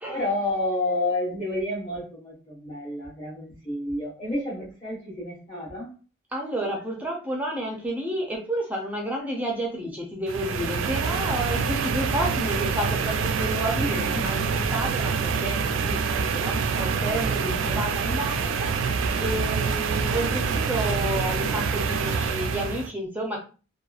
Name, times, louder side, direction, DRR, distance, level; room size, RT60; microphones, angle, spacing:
voice 1, 0.1-5.9 13.8-14.4, left 1 dB, 30° left, -9 dB, 1.0 m, -30 dB
voice 2, 6.3-23.4, right 1 dB, 10° right, -1 dB, 0.5 m, -31 dB
sound 1, 10.3-22.9, right 5 dB, 75° right, 0.3 m, -26 dB
2.8 x 2.3 x 2.4 m, 0.35 s
head